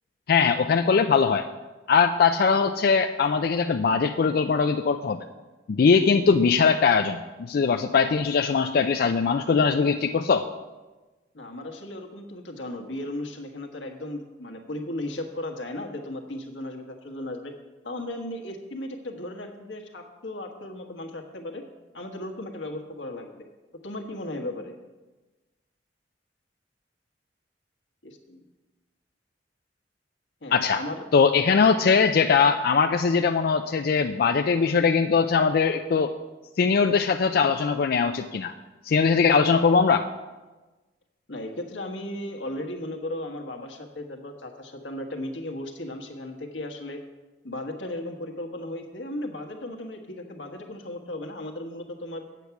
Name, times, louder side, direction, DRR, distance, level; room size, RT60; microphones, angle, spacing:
voice 1, 0.3-1.5 1.9-5.2 5.7-10.5 30.5-30.8 31.1-36.1 36.6-38.5 38.8-40.1, left 5 dB, 55° left, 6 dB, 0.4 m, -21 dB
voice 2, 11.3-17.5 17.8-21.6 21.9-23.4 23.8-24.7 28.0-28.4 30.4-31.0 41.3-47.0 47.4-52.2, left 1 dB, 90° left, 3 dB, 1.4 m, -36 dB
8.2 x 8.2 x 5.8 m, 1.2 s
head